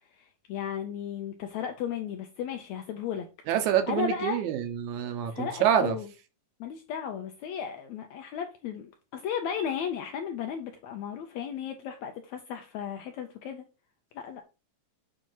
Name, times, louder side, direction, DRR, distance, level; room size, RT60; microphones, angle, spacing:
voice 1, 0.1-3.3 3.9-4.4 5.3-6.1 6.6-13.6 14.1-14.4, left 8 dB, 80° left, 1.6 m, -35 dB
voice 2, 3.5-6.0, right 9 dB, 70° right, 2.0 m, -26 dB
7.6 x 2.8 x 4.5 m
omnidirectional pair, 3.9 m